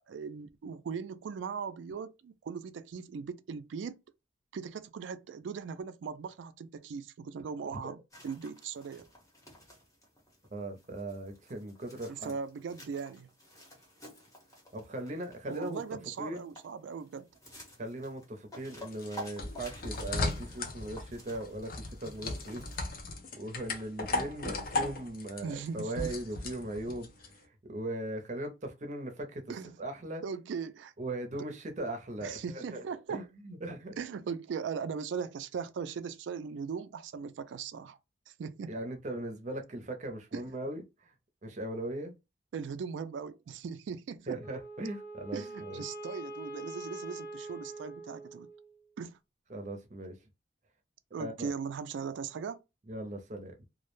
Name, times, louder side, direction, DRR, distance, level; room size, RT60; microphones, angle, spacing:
voice 1, 0.0-4.0 4.5-9.1 12.1-13.3 15.5-17.3 25.4-26.1 29.5-29.8 30.2-30.9 31.4-31.5 31.8-31.9 32.2-33.3 33.9-38.0 38.3-38.8 40.3-40.4 42.5-44.4 45.3-48.5 49.0-49.2 51.1-52.6, right 6 dB, 90° right, 0.3 m, -39 dB
sound 1, 8.1-22.8, equal, 20° left, 0.8 m, -52 dB
voice 2, 10.5-12.4 14.7-15.8 16.2-16.5 17.8-23.0 23.4-27.1 27.7-29.4 29.8-30.2 31.0-32.8 33.1-34.0 38.7-41.1 41.4-42.1 44.3-45.8 49.5-50.2 51.2-51.5 52.9-53.5, right 1 dB, 40° right, 0.6 m, -39 dB
sound 2, 18.6-27.3, left 2 dB, 50° left, 0.5 m, -37 dB
Wind instrument woodwind instrument, 44.4-48.8, right 2 dB, 75° left, 1.1 m, -44 dB
2.2 x 2.1 x 3.0 m
head